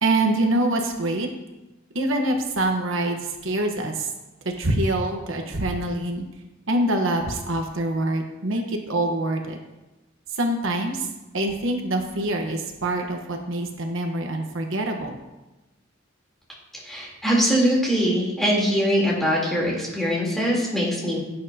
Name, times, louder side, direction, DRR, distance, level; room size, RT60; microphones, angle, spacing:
voice 1, 0.0-1.3 1.9-4.1 4.4-6.3 6.7-9.6 10.3-11.1 11.3-15.1, right 1 dB, 65° right, 3 dB, 1.2 m, -25 dB
voice 2, 16.8-21.2, equal, ahead, -5 dB, 3.4 m, -22 dB
17.0 x 8.9 x 2.8 m, 1.0 s
head